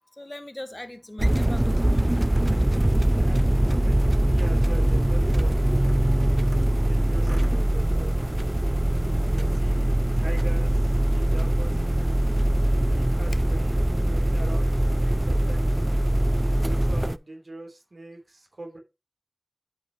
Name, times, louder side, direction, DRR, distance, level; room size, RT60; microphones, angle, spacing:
voice 1, 0.1-2.2, left 1 dB, 30° left, 1.3 m, -40 dB
sound 1, 1.2-17.2, right 1 dB, 25° right, 0.5 m, -22 dB
voice 2, 3.1-3.4 3.8-5.6 6.8-8.1 9.3-12.3 12.8-15.9 16.5-18.8, right 2 dB, 75° right, 3.3 m, -42 dB
12.0 x 5.1 x 3.0 m
wide cardioid pair, 50°, 0 cm